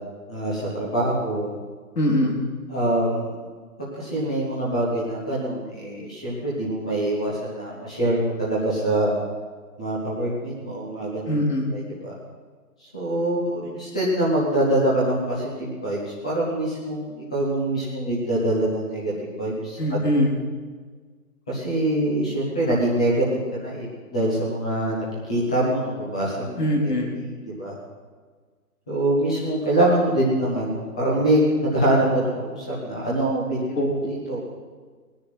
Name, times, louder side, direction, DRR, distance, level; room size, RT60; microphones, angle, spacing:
voice 1, 0.3-1.5 2.7-3.3 3.8-9.1 9.8-11.4 11.7-12.1 12.9-20.0 21.5-26.9 27.5-27.7 28.9-33.8 34.1-34.4, right 1 dB, 5° left, -6 dB, 0.6 m, -24 dB
voice 2, 2.0-2.4 11.3-11.7 19.8-20.3 26.6-27.1 33.7-34.1, equal, 90° left, -1 dB, 3.7 m, -22 dB
19.5 x 9.8 x 5.8 m, 1.5 s
hypercardioid pair, 160°, 46 cm